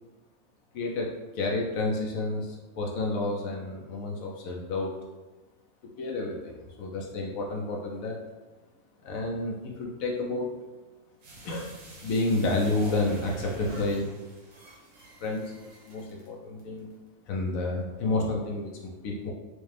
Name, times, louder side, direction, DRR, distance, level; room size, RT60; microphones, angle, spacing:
voice 1, 0.7-1.1 1.3-4.9 5.8-8.2 9.0-10.6 11.4-11.7 12.0-14.1 15.2-17.0 17.2-19.3, left 2 dB, 90° left, -1 dB, 1.1 m, -30 dB
sound 1, 11.2-16.3 16.6-16.7, right 3 dB, 70° right, 1.2 m, -43 dB
4.7 x 2.1 x 3.2 m, 1.2 s
omnidirectional pair, 1.4 m